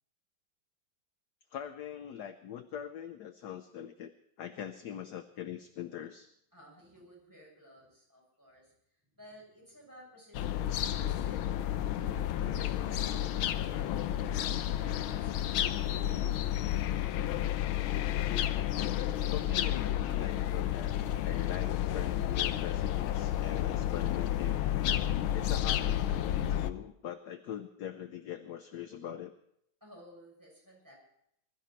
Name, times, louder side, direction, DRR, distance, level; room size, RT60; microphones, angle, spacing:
voice 1, 1.5-4.1 4.4-6.3 19.3-20.9 21.2-24.6 25.3-29.3, left 10 dB, 65° left, 9 dB, 1.2 m, -42 dB
voice 2, 6.5-8.7 9.1-14.4 29.8-30.9, equal, 10° right, -3 dB, 6.7 m, -57 dB
sound 1, 10.3-26.7, left 12 dB, 80° left, 1.6 m, -31 dB
21.0 x 13.0 x 4.5 m, 0.74 s
omnidirectional pair, 2.3 m